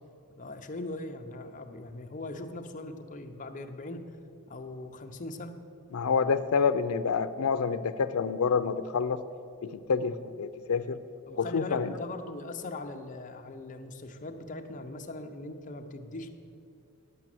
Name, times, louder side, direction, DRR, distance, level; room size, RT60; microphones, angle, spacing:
voice 1, 0.3-4.1 4.5-5.6 11.3-16.3, left 2 dB, 35° left, 5 dB, 0.7 m, -40 dB
voice 2, 5.9-9.2 9.6-11.0 11.4-11.9, left 5 dB, 75° left, 12 dB, 0.5 m, -28 dB
11.0 x 6.1 x 7.6 m, 2.6 s
head